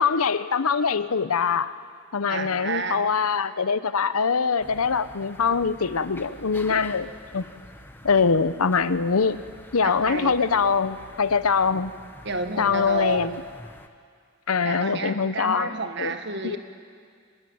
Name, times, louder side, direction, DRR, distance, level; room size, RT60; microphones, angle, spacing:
voice 1, 0.0-1.7 2.1-7.1 7.3-7.5 8.0-9.4 9.7-11.9 12.6-13.4 14.5-16.1 16.4-16.6, left 5 dB, 85° left, 14 dB, 0.8 m, -23 dB
voice 2, 2.3-3.1 9.8-10.4 12.2-13.3 14.6-16.6, right 3 dB, 55° right, 7 dB, 1.6 m, -30 dB
sound 1, 4.6-13.9, left 1 dB, 10° left, 1.0 m, -46 dB
25.0 x 20.0 x 9.4 m, 2.1 s
head